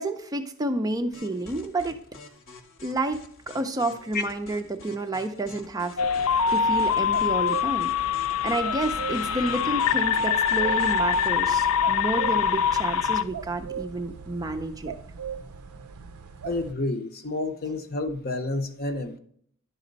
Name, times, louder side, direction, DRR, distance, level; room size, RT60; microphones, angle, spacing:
voice 1, 0.0-2.0 2.8-3.2 3.5-7.9 8.2-14.9, right 2 dB, 15° right, 0.4 m, -30 dB
sound 1, 1.1-11.8, left 3 dB, 65° left, 1.2 m, -48 dB
sound 2, 6.0-13.2, left 7 dB, 80° left, 0.5 m, -24 dB
sound 3, 6.0-16.7, right 6 dB, 85° right, 0.5 m, -39 dB
voice 2, 16.4-19.2, left 2 dB, 45° left, 0.7 m, -29 dB
10.5 x 4.1 x 3.9 m
head